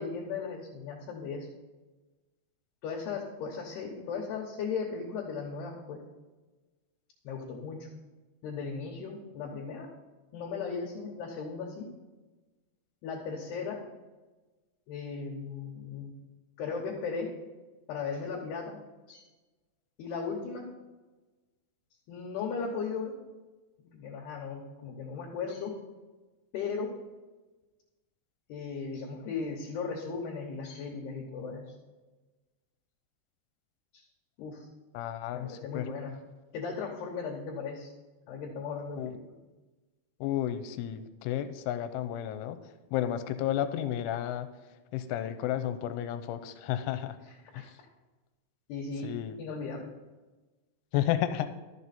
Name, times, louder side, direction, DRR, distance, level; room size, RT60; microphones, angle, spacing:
voice 1, 0.0-1.5 2.8-6.0 7.2-7.9 8.4-9.9 10.3-11.9 13.0-13.8 14.9-16.1 16.6-17.3 17.9-18.8 19.1-19.2 20.0-20.7 22.1-23.1 23.8-25.7 26.5-26.9 28.5-31.7 33.9-34.0 34.4-34.7 35.3-36.2 36.5-37.9 38.3-39.2 47.5-47.6 48.7-49.1 49.4-49.9, left 5 dB, 70° left, -2 dB, 2.9 m, -36 dB
voice 2, 34.9-35.9 39.0-39.1 40.2-42.6 42.9-44.5 44.9-47.2 47.5-47.7 49.0-49.4 50.9-51.5, left 11 dB, 85° left, 10 dB, 3.1 m, -32 dB
12.5 x 7.4 x 4.1 m, 1.2 s
omnidirectional pair, 5.5 m